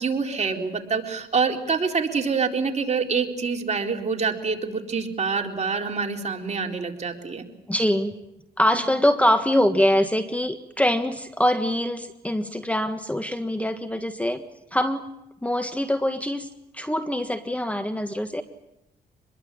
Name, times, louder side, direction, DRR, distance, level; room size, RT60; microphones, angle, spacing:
voice 1, 0.0-7.4, right 5 dB, 40° right, 2 dB, 4.1 m, -26 dB
voice 2, 7.7-8.2 8.6-14.4 14.7-15.0 15.4-16.5 16.7-18.4, left 1 dB, 10° left, 8 dB, 1.5 m, -23 dB
26.0 x 21.5 x 8.7 m, 0.89 s
cardioid pair, 70°, 18 cm